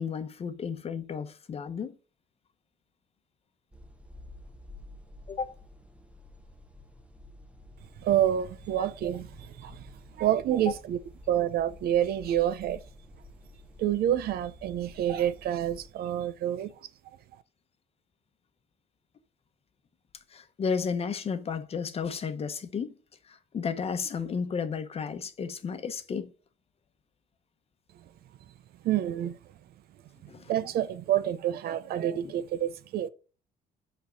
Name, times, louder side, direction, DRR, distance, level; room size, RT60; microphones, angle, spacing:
voice 1, 0.0-2.0 5.3-5.5 8.8-8.9 20.3-22.9 23.3-26.3 30.3-30.5, left 6 dB, 35° left, 1.0 m, -33 dB
sound 1, 3.7-15.9, left 1 dB, 5° right, 0.9 m, -51 dB
voice 2, 8.0-9.9 10.2-11.0 11.3-12.8 13.8-16.7 28.8-29.4 30.2-33.1, right 11 dB, 65° right, 0.7 m, -28 dB
5.9 x 4.5 x 6.3 m
cardioid pair, 110°, 17 cm